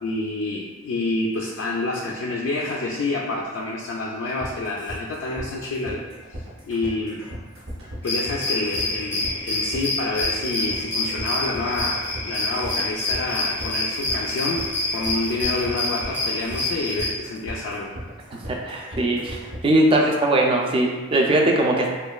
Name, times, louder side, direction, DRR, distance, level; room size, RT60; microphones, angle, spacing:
voice 1, 0.0-6.1 6.6-7.2 8.0-14.6 14.9-17.9, left 2 dB, 75° left, -4 dB, 0.3 m, -28 dB
sound 1, 4.4-19.8, equal, 75° right, 0.7 m, -37 dB
sound 2, 8.0-17.1, left 2 dB, 10° left, 0.6 m, -27 dB
voice 2, 18.3-21.9, right 1 dB, 25° right, 0 dB, 0.3 m, -20 dB
3.0 x 2.2 x 2.3 m, 1.3 s
head